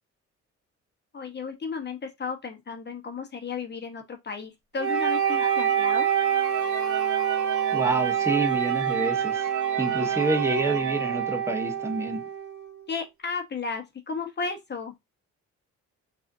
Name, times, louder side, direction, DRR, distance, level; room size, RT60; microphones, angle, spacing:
voice 1, 1.1-6.1 12.9-14.9, left 5 dB, 35° left, 1.1 m, -34 dB
Wind instrument woodwind instrument, 4.8-12.8, right 8 dB, 50° right, 1.2 m, -26 dB
sound 1, 4.8-11.8, right 11 dB, 75° right, 0.4 m, -36 dB
voice 2, 7.7-9.5 9.8-12.2, right 2 dB, 10° right, 0.9 m, -28 dB
4.8 x 2.7 x 2.7 m
cardioid pair, 90°, 30 cm